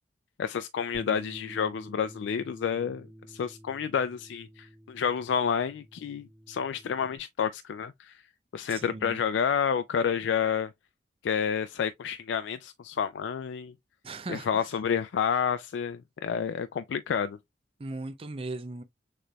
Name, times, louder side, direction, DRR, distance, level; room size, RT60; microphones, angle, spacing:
voice 1, 0.4-8.1 8.5-10.7 11.2-13.7 14.3-17.4, left 7 dB, 90° left, 0.3 m, -29 dB
Bass guitar, 0.9-7.2, equal, 45° left, 1.2 m, -49 dB
voice 2, 8.7-9.2 14.0-14.7 17.8-18.8, right 2 dB, 30° right, 0.4 m, -38 dB
6.5 x 3.1 x 2.3 m
head